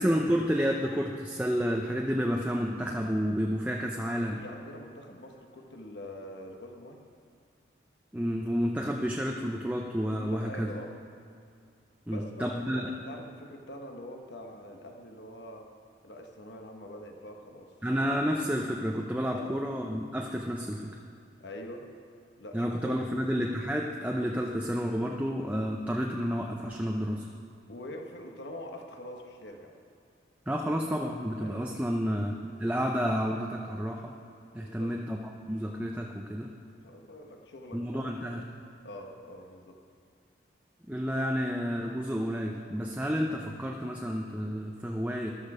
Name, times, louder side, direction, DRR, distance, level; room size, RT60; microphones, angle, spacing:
voice 1, 0.0-4.4 8.1-10.7 12.1-12.8 17.8-20.9 22.5-27.3 30.5-34.1 34.5-35.2 35.5-36.5 37.7-38.4 40.9-45.3, equal, 10° right, 0 dB, 0.6 m, -30 dB
voice 2, 4.3-7.0 10.2-10.9 12.1-15.7 16.0-17.7 19.3-19.5 21.4-21.9 22.4-23.1 27.7-29.7 31.4-31.6 34.6-34.9 36.7-38.4 38.8-39.8, left 1 dB, 70° left, 3 dB, 1.2 m, -44 dB
13.5 x 12.0 x 4.9 m, 2.4 s
head